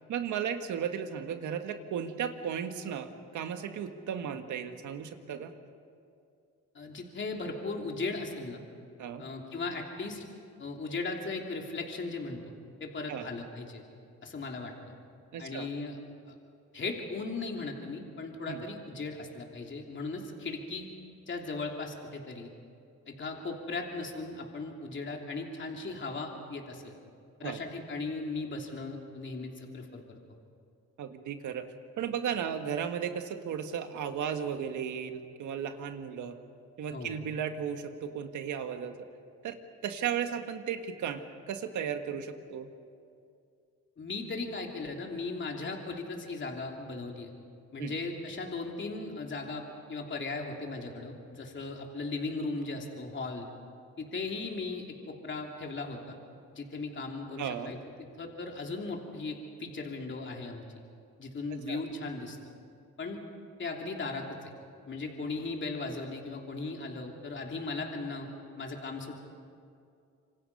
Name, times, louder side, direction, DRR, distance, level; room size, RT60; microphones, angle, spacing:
voice 1, 0.1-5.5 9.0-9.2 13.1-13.3 15.3-15.7 18.5-18.6 27.4-27.6 31.0-31.7 32.0-36.4 36.8-39.1 39.4-39.6 39.8-42.7 47.8-47.9 57.4-57.7 61.7-61.8, right 8 dB, 75° right, 7 dB, 1.7 m, -35 dB
voice 2, 6.7-8.6 9.2-10.2 10.6-12.4 12.8-13.8 14.2-14.7 15.4-16.0 16.3-16.4 16.7-20.9 21.3-22.5 23.0-26.9 27.4-30.2 36.9-37.2 44.0-47.3 47.7-49.6 49.9-53.5 54.0-56.2 56.5-57.8 58.2-60.6 61.2-62.4 63.0-63.2 63.6-64.5 64.9-69.1, left 3 dB, 40° left, 1 dB, 3.2 m, -37 dB
26.5 x 24.5 x 5.5 m, 2.4 s
cardioid pair, 90°, 30 cm